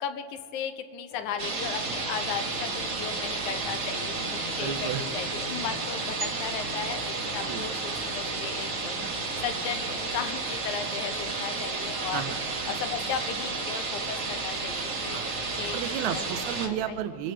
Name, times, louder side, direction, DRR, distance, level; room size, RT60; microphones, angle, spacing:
voice 1, 0.0-12.2 12.7-16.2 16.6-16.7, left 8 dB, 80° left, 8 dB, 2.1 m, -36 dB
sound 1, 1.1-10.0, left 3 dB, 65° left, 3.0 m, -46 dB
sound 2, 1.4-16.7, right 3 dB, 45° right, 1.0 m, -32 dB
voice 2, 4.5-5.1 7.5-7.7 12.1-12.4 15.1-15.3 15.7-17.3, right 10 dB, 80° right, 9 dB, 1.9 m, -32 dB
25.5 x 14.0 x 3.2 m, 2.8 s
omnidirectional pair, 3.4 m